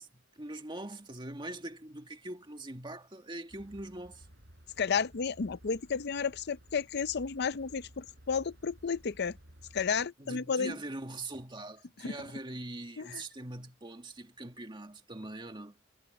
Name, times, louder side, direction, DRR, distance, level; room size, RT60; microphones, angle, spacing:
voice 1, 0.0-4.3 10.2-15.8, right 2 dB, 25° right, 1.9 m, -42 dB
sound 1, 3.5-10.1, equal, 55° right, 7.2 m, -56 dB
voice 2, 4.8-9.4 9.7-10.8 12.0-12.1 13.0-13.2, left 6 dB, 50° left, 0.6 m, -32 dB
head